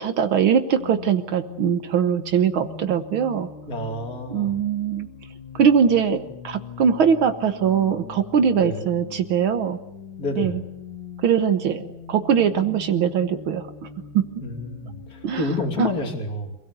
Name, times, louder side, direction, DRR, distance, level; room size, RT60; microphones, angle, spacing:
voice 1, 0.0-3.5 4.3-5.1 5.5-6.2 6.4-9.8 10.4-10.6 11.2-13.7 14.1-14.2 15.2-15.4 15.8-15.9, right 7 dB, 75° right, 8 dB, 1.9 m, -21 dB
sound 1, 0.8-16.1, left 5 dB, 65° left, 2.6 m, -41 dB
voice 2, 3.7-4.6 8.6-8.9 10.2-10.7 14.4-16.6, left 2 dB, 45° left, 4 dB, 3.5 m, -29 dB
27.0 x 17.0 x 8.2 m, 0.91 s
omnidirectional pair, 2.3 m